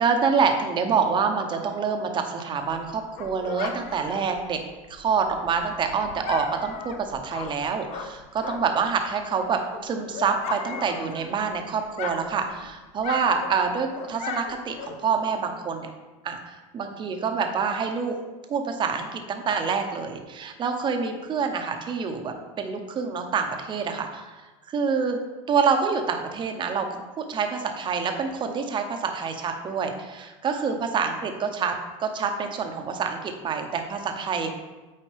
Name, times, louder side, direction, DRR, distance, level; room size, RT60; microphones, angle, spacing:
voice 1, 0.0-4.6 4.9-15.9 16.2-18.1 18.5-24.3 24.7-25.2 25.5-26.9 27.2-31.7 32.0-34.6, right 5 dB, 30° right, 5 dB, 0.8 m, -26 dB
Dog, 2.6-8.9 9.3-11.6 11.8-15.3, left 5 dB, 45° left, 0.7 m, -37 dB
8.6 x 4.2 x 3.4 m, 1.2 s
supercardioid pair, 125°, 17 cm